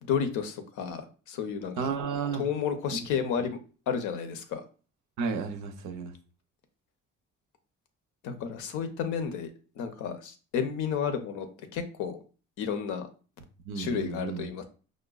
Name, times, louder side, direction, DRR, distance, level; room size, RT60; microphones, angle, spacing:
voice 1, 0.0-1.9 2.3-3.6 3.9-4.6 8.2-11.5 11.7-12.2 12.6-13.1 13.8-14.6, left 7 dB, 90° left, 0.6 m, -32 dB
voice 2, 1.8-2.4 2.9-3.1 5.2-6.1 13.6-14.5, right 5 dB, 90° right, 0.6 m, -32 dB
5.0 x 2.1 x 2.3 m
cardioid pair, 90°, 30 cm